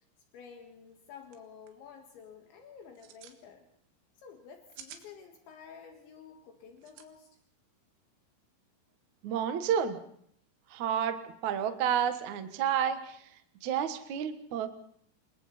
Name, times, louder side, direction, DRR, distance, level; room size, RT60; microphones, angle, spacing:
voice 1, 0.3-3.7 4.2-7.4, left 6 dB, 70° left, 3 dB, 3.9 m, -51 dB
sound 1, 0.9-1.0 1.2-1.4 1.7-2.0 2.8-3.4 4.5-5.1 6.8-7.1, right 9 dB, 85° right, 4.3 m, -50 dB
voice 2, 9.2-10.0 10.7-11.2 11.4-13.2 13.6-14.7, right 9 dB, 70° right, 7 dB, 1.8 m, -30 dB
28.5 x 22.0 x 4.3 m, 0.65 s
omnidirectional pair, 5.8 m